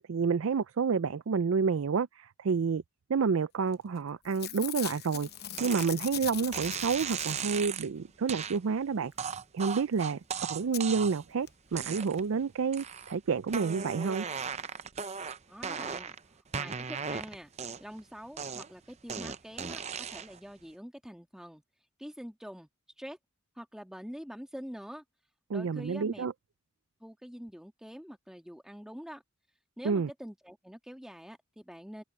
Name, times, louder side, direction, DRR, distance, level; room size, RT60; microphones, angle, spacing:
voice 1, 0.0-2.8 3.1-5.3 5.6-9.1 9.5-14.3 25.5-26.3 29.8-30.1, right 5 dB, 70° right, 0.4 m, -29 dB
Packing tape duct tape / Tearing, 3.7-4.0 4.2-7.8 9.8-9.9 10.0-10.1 10.7-10.8 11.5-11.6 11.8-11.9, left 12 dB, 50° left, 0.8 m, -40 dB
sound 1, 5.6-5.9 6.5-7.9 8.3-8.6 9.2-11.3 11.7-12.3 12.7-13.2 13.5-16.2 16.5-18.0 18.4-20.4, right 6 dB, 30° right, 0.7 m, -37 dB
voice 2, 15.5-16.1 16.5-17.5 17.8-21.6 22.0-22.7 23.0-23.2 23.5-25.0 25.5-26.3 27.0-29.2 29.8-32.0, equal, 5° right, 1.7 m, -45 dB
head